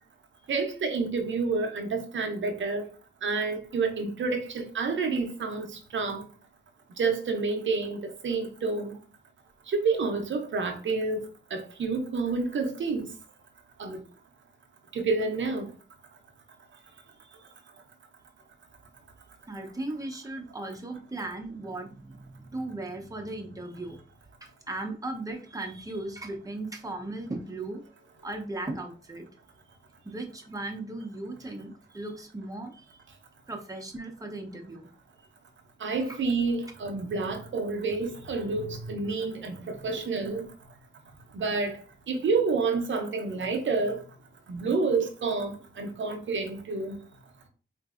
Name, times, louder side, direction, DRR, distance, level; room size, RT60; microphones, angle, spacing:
voice 1, 0.5-2.9 3.2-6.2 7.0-9.0 9.7-13.0 13.8-14.0 14.9-15.7 35.8-40.5 41.3-41.8 42.1-44.0 44.5-47.0, right 4 dB, 80° right, 0.6 m, -29 dB
voice 2, 19.5-24.0 24.4-27.8 28.2-29.3 30.0-33.0 33.5-34.9 36.1-36.2, right 2 dB, 15° right, 0.7 m, -37 dB
3.8 x 2.6 x 2.4 m
cardioid pair, 65°, 20 cm